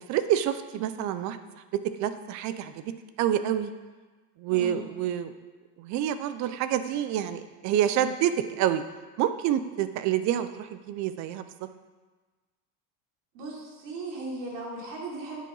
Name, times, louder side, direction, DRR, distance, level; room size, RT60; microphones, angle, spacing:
voice 1, 0.0-1.4 2.0-2.9 3.2-3.7 4.4-5.3 5.8-8.8 9.2-11.5, right 11 dB, 45° right, 11 dB, 0.6 m, -27 dB
voice 2, 4.5-4.9 13.3-15.4, right 2 dB, 90° right, -3 dB, 3.3 m, -37 dB
9.8 x 8.4 x 3.9 m, 1.3 s
cardioid pair, 160°, 40 cm